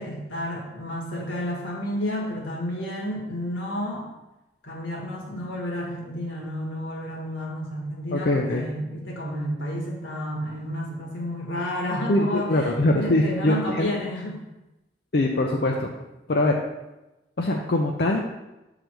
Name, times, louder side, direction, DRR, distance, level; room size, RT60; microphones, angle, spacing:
voice 1, 0.0-4.1 4.6-14.4, equal, 80° left, -2 dB, 1.7 m, -31 dB
voice 2, 8.1-8.6 12.1-13.9 15.1-15.9 16.3-16.5 17.4-18.2, left 1 dB, 55° left, 0 dB, 0.5 m, -22 dB
6.6 x 3.9 x 4.6 m, 1.0 s
head